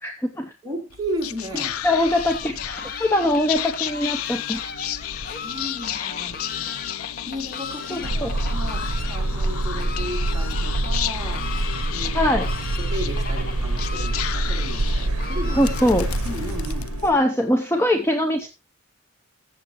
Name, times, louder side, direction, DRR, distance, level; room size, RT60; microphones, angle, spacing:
voice 1, 0.0-0.5 1.8-4.6 7.9-8.3 12.1-12.5 15.6-16.1 17.0-18.5, left 1 dB, 10° left, 0.7 m, -22 dB
voice 2, 0.6-1.8 5.3-6.8 7.3-11.5 11.9-12.2 12.8-15.8 16.2-17.0, equal, 20° right, 3.9 m, -34 dB
Whispering, 0.9-17.5, left 10 dB, 75° left, 0.5 m, -33 dB
Fowl, 1.5-16.2, left 4 dB, 40° left, 1.0 m, -38 dB
sound 1, 8.0-17.2, right 2 dB, 80° right, 0.8 m, -26 dB
14.0 x 7.3 x 3.1 m
head